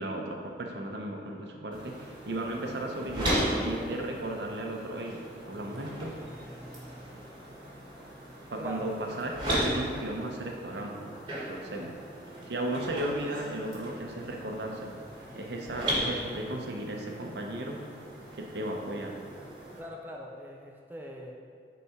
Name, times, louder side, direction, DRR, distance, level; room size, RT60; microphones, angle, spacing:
voice 1, 0.0-6.2 8.5-11.1 11.5-11.9 12.5-15.0 15.3-17.8 18.3-19.2, right 1 dB, 75° right, 1 dB, 0.8 m, -35 dB
sound 1, 1.7-19.8, equal, 25° right, 1.4 m, -37 dB
voice 2, 8.5-9.0 11.7-11.9 19.8-21.4, equal, 10° right, -1 dB, 0.5 m, -42 dB
7.2 x 4.2 x 4.4 m, 2.2 s
head